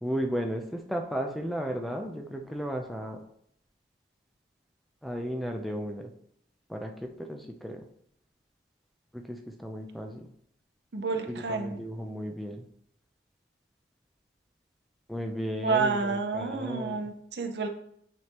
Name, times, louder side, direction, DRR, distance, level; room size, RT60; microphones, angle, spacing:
voice 1, 0.0-3.2 5.0-6.1 6.7-7.9 9.1-10.3 11.3-12.7 15.1-17.0, equal, ahead, 3 dB, 0.5 m, -34 dB
voice 2, 10.9-11.8 15.6-17.7, right 4 dB, 65° right, 5 dB, 0.7 m, -29 dB
9.3 x 3.5 x 3.0 m, 0.70 s
head